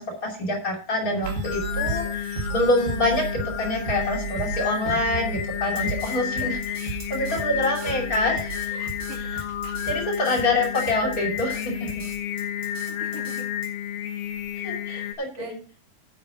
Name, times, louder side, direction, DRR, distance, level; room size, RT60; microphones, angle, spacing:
voice 1, 0.0-8.7 9.2-9.4 9.9-11.9 14.6-15.6, left 1 dB, 25° left, 1 dB, 2.9 m, -26 dB
Singing, 1.1-15.1, left 10 dB, 80° left, 2.5 m, -31 dB
sound 1, 1.2-12.1, right 5 dB, 80° right, 3.7 m, -35 dB
Drum kit, 5.8-13.7, right 2 dB, 25° right, 2.8 m, -44 dB
voice 2, 7.3-8.2 8.7-9.4 12.6-13.5 14.9-15.6, right 4 dB, 65° right, 1 dB, 3.9 m, -43 dB
9.6 x 7.7 x 5.1 m, 0.39 s
omnidirectional pair, 4.0 m